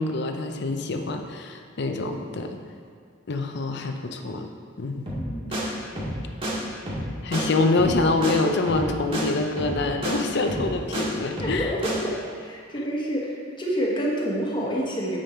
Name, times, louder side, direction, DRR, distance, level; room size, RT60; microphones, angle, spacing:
voice 1, 0.0-2.5 3.3-4.5 4.8-5.1 5.6-5.8 7.2-11.7, left 3 dB, 60° left, 5 dB, 0.6 m, -25 dB
voice 2, 5.1-5.5 11.4-15.2, equal, 25° left, -3 dB, 1.2 m, -28 dB
sound 1, 5.1-5.3 5.5-5.6 6.0-6.2 6.4-6.5 6.9-7.1 7.3-7.4 7.8-8.0 8.2-8.3 8.7-8.9 9.1-9.2 9.6-9.8 10.0-10.1 10.5-11.0 11.4-11.6 11.8-11.9, equal, 30° right, 1.8 m, -29 dB
8.8 x 5.4 x 4.3 m, 2.1 s
head